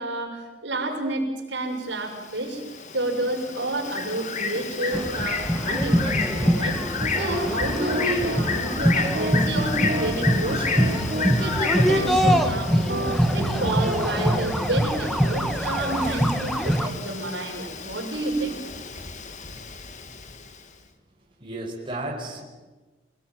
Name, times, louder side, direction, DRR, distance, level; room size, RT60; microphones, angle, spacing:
voice 1, 0.0-2.6 2.9-13.0 13.3-18.6, right 2 dB, 70° right, 1 dB, 6.3 m, -30 dB
Bird, 1.9-20.6, left 5 dB, 40° left, 2.2 m, -32 dB
sound 1, 4.9-16.9, equal, ahead, 2.0 m, -24 dB
sound 2, 7.0-14.3, right 1 dB, 50° right, 5.5 m, -32 dB
voice 2, 21.3-22.4, right 2 dB, 25° right, -2 dB, 5.6 m, -34 dB
28.0 x 19.5 x 9.3 m, 1.2 s
head